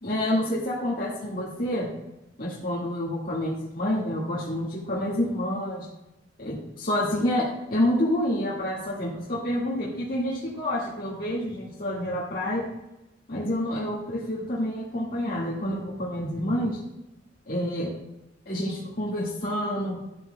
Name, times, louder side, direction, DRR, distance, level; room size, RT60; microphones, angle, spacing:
voice 1, 0.0-1.9 2.4-5.9 6.4-12.6 13.3-16.8 17.5-17.9 18.4-20.0, left 1 dB, 50° left, -7 dB, 1.9 m, -28 dB
11.5 x 7.6 x 2.3 m, 0.91 s
head